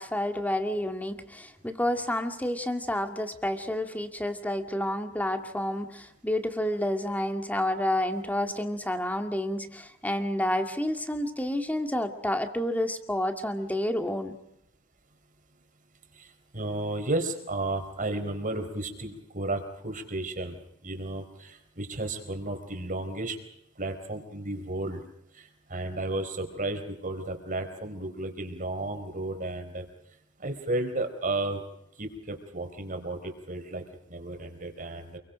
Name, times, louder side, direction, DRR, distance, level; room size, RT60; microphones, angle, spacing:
voice 1, 0.0-14.4, left 1 dB, 10° left, 6 dB, 2.1 m, -29 dB
voice 2, 16.1-23.4 23.8-25.0 25.3-29.8 30.4-31.6 32.0-35.2, right 2 dB, 40° right, 6 dB, 4.2 m, -33 dB
28.5 x 23.0 x 5.2 m, 0.85 s
head